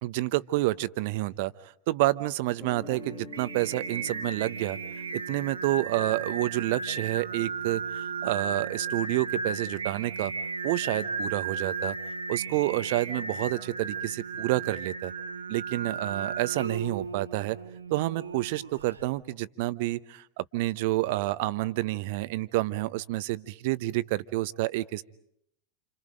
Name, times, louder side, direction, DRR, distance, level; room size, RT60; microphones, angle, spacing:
voice 1, 0.0-1.5 1.9-4.8 5.1-10.3 10.6-11.9 12.3-15.1 15.5-17.6 17.9-25.0, right 18 dB, 50° right, 18 dB, 0.9 m, -29 dB
Guitar, 2.6-7.2, left 9 dB, 30° left, 3.4 m, -50 dB
Singing, 2.8-19.1, right 4 dB, 75° right, 1.4 m, -35 dB
29.0 x 29.0 x 5.2 m, 0.74 s
figure-of-eight pair, 90°, 0 cm